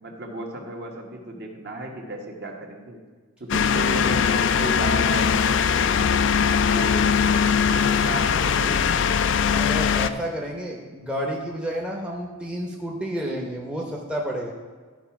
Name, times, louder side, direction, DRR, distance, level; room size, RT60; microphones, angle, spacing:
voice 1, 0.0-3.0 3.4-6.1 6.7-9.0, right 1 dB, 50° right, 1 dB, 1.4 m, -35 dB
sound 1, 3.5-10.1, left 6 dB, 55° left, 0.4 m, -21 dB
voice 2, 9.5-14.5, equal, 5° right, -2 dB, 0.8 m, -30 dB
12.5 x 4.8 x 5.9 m, 1.5 s
head